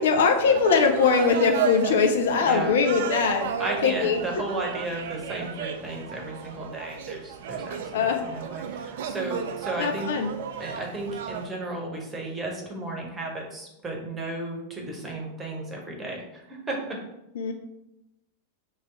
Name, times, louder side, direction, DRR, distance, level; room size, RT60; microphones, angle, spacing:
voice 1, 0.0-3.5 3.8-4.2 7.9-8.2 9.8-10.3 17.4-17.5, left 5 dB, 60° left, 4 dB, 0.5 m, -21 dB
sound 1, 0.5-11.5, right 7 dB, 55° right, 0.4 m, -34 dB
voice 2, 2.4-2.7 3.6-10.1 10.6-17.0, right 2 dB, 15° right, 0 dB, 1.1 m, -34 dB
3.0 x 2.9 x 4.6 m, 0.89 s
figure-of-eight pair, 90°, 0 cm